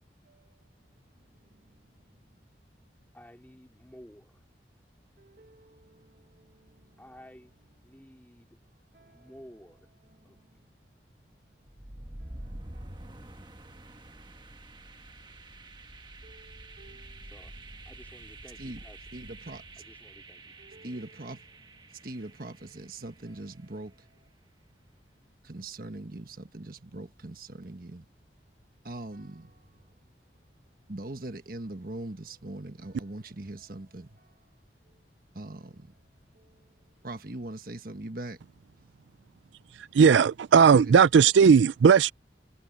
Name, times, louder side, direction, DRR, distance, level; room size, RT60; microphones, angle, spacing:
voice 1, 3.1-4.4 7.0-7.5 7.8-8.6 9.1-9.9 10.2-10.7 17.2-19.0 19.8-20.5, equal, 10° left, 3.8 m, -53 dB
voice 2, 5.2-6.0 8.9-9.2 12.7-12.9 16.2-17.2 18.6-18.8 19.1-19.6 20.6-21.4 22.0-23.9 25.4-28.0 28.8-29.5 30.9-34.1 35.3-35.9 37.0-38.4 40.7-41.0, right 2 dB, 50° right, 1.4 m, -41 dB
sound 1, 11.7-23.5, right 1 dB, 25° right, 1.4 m, -47 dB
voice 3, 39.9-42.1, right 6 dB, 85° right, 0.4 m, -17 dB
head